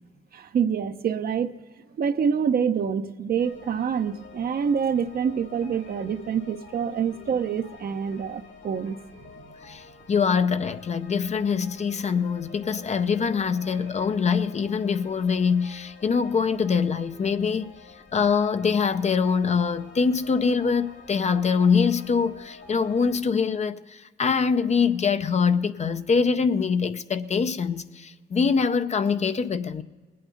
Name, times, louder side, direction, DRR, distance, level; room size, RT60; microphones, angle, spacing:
voice 1, 0.3-1.5 2.0-9.0, right 7 dB, 50° right, 0.7 m, -26 dB
sound 1, 3.4-23.2, left 5 dB, 85° left, 2.8 m, -48 dB
voice 2, 9.6-17.7 18.1-29.8, left 5 dB, 35° left, 0.6 m, -24 dB
20.5 x 8.7 x 5.2 m
cardioid pair, 90°, 20 cm